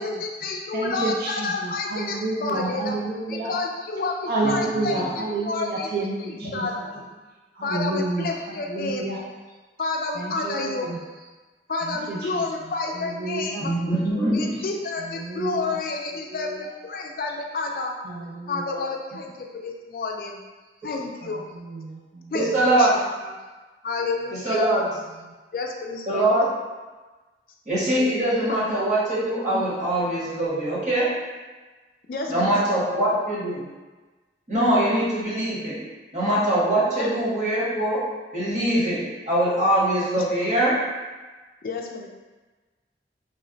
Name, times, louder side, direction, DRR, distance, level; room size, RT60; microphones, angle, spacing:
voice 1, 0.0-3.0 3.3-5.9 6.2-6.7 7.6-9.1 9.8-10.9 11.7-13.7 14.3-17.9 18.5-20.4 20.8-21.4 22.3-22.5 22.8-22.9 23.2-23.3 23.8-24.7 25.5-26.2 29.5-29.6 32.1-33.0 34.7-34.8 37.0-37.1 40.2-40.3 41.6-42.1, left 3 dB, 50° left, 1 dB, 0.3 m, -30 dB
voice 2, 0.7-3.5 4.3-6.6 7.6-8.3 8.7-9.2 10.2-11.0 11.9-12.4 13.0-13.6 15.1-15.8 18.1-18.7 21.7-22.0 22.2-22.3, right 2 dB, 55° right, -3 dB, 0.4 m, -29 dB
voice 3, 13.6-14.6 22.3-23.0 24.4-24.8 26.1-26.5 27.7-31.1 32.3-33.6 34.5-35.8 36.1-38.0 38.3-39.0 39.3-40.7, right 1 dB, 40° right, -9 dB, 1.1 m, -22 dB
3.1 x 2.1 x 3.8 m, 1.3 s
head